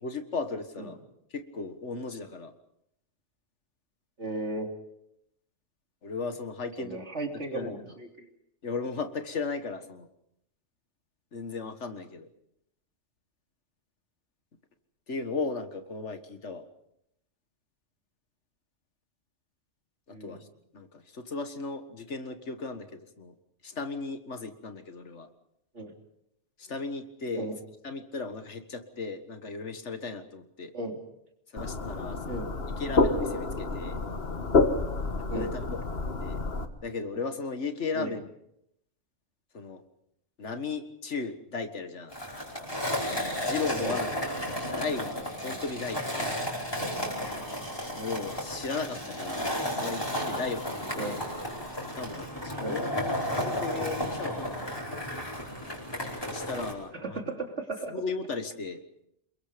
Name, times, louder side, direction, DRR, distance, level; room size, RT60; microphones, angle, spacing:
voice 1, 0.0-1.0 1.3-2.5 6.0-7.1 7.3-7.9 8.6-10.1 11.3-12.3 15.1-16.6 20.1-20.5 20.7-23.3 23.6-25.3 26.6-27.5 27.8-30.7 31.5-32.5 32.8-34.0 35.2-36.4 36.8-38.3 39.5-39.8 40.4-42.1 43.1-44.1 44.3-45.2 45.4-46.4 48.0-51.2 51.9-54.6 56.2-57.2 57.9-58.8, left 4 dB, 80° left, 9 dB, 2.0 m, -36 dB
voice 2, 4.2-4.7 6.8-8.3 20.1-20.4 25.7-25.9 27.3-27.5 30.7-31.0 32.3-32.5 35.3-35.5 37.9-38.1 43.8-44.0 50.9-51.3 52.6-52.8 56.9-58.0, right 2 dB, 80° right, 2 dB, 3.6 m, -35 dB
sound 1, 31.6-36.6, left 3 dB, 60° left, 1.8 m, -28 dB
Skateboard, 42.1-56.7, equal, 20° left, 5.2 m, -33 dB
28.5 x 22.0 x 5.2 m, 0.77 s
omnidirectional pair, 1.2 m